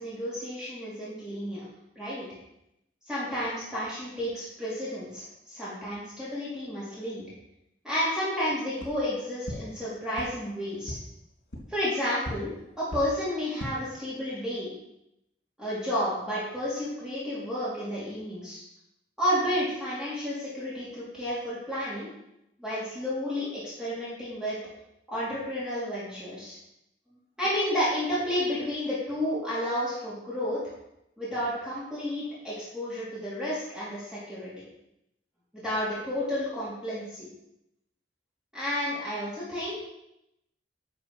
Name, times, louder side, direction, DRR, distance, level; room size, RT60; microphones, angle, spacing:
voice 1, 0.0-1.7 2.0-2.3 3.1-7.2 7.8-11.0 11.7-12.5 12.8-14.7 15.6-18.6 19.2-22.1 22.6-24.6 25.1-26.6 27.4-30.6 31.2-34.5 35.6-37.3 38.5-39.8, equal, 5° right, -9 dB, 3.8 m, -31 dB
sound 1, 8.8-8.9 9.4-9.5 10.1-10.2 10.8-10.9 11.5-11.6 12.2-12.3 12.9-13.0 13.4-13.7, left 1 dB, 75° left, 3.3 m, -36 dB
10.5 x 6.3 x 6.5 m, 0.82 s
head